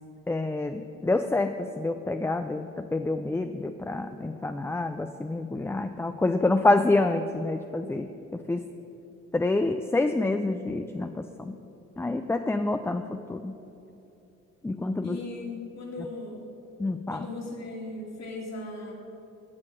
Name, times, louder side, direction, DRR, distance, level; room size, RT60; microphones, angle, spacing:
voice 1, 0.3-8.7 9.3-11.6 12.0-13.5 14.6-15.2 16.8-17.3, left 2 dB, 10° left, 8 dB, 0.3 m, -27 dB
voice 2, 15.0-16.5 17.1-18.9, left 2 dB, 60° left, -1 dB, 2.5 m, -38 dB
9.9 x 6.6 x 7.6 m, 2.9 s
cardioid pair, 85°, 31 cm